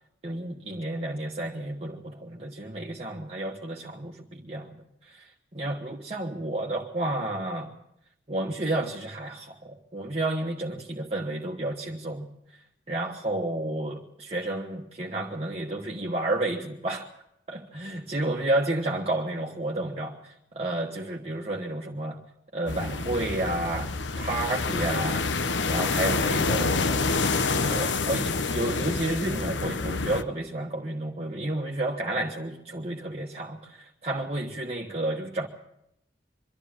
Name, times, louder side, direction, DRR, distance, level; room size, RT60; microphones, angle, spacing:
voice 1, 0.2-7.7 8.3-17.1 17.5-22.2 22.5-25.3 25.7-27.1 27.6-35.5, right 1 dB, 35° right, -1 dB, 1.3 m, -31 dB
sound 1, 22.7-30.2, left 4 dB, 90° left, 1.0 m, -27 dB
24.0 x 12.5 x 8.8 m, 0.81 s
head